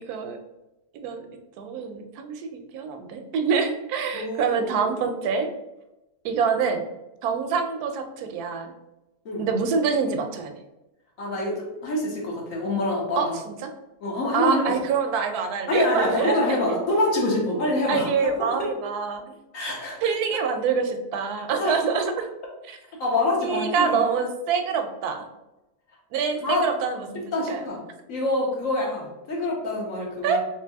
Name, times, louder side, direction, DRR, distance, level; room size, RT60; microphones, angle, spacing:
voice 1, 1.6-5.5 6.2-6.8 7.2-8.7 9.4-10.5 13.2-13.7 14.3-16.4 17.9-19.2 20.0-22.3 22.7-22.8 23.4-25.2 26.1-27.2 27.5-27.6 30.2-30.4, right 6 dB, 80° right, 6 dB, 1.1 m, -26 dB
voice 2, 4.1-4.7 9.2-9.4 11.2-13.4 14.0-14.8 15.7-18.1 18.6-18.7 19.5-20.0 21.6-21.8 23.0-24.0 26.4-26.6 27.3-27.8 28.1-30.4, left 1 dB, 60° left, -2 dB, 1.4 m, -25 dB
3.3 x 3.2 x 3.4 m, 0.96 s
omnidirectional pair, 1.6 m